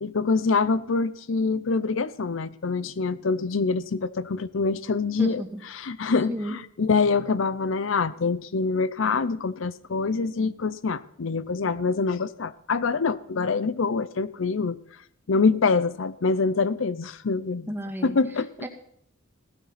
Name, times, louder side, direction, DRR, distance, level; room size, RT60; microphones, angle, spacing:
voice 1, 0.0-5.4 5.7-14.8 15.3-17.7 18.0-18.5, left 4 dB, 65° left, 17 dB, 0.6 m, -25 dB
voice 2, 5.2-5.6 6.3-6.6 17.7-18.2 18.6-18.7, right 1 dB, 10° right, 3 dB, 1.9 m, -32 dB
16.5 x 12.5 x 5.8 m, 0.65 s
head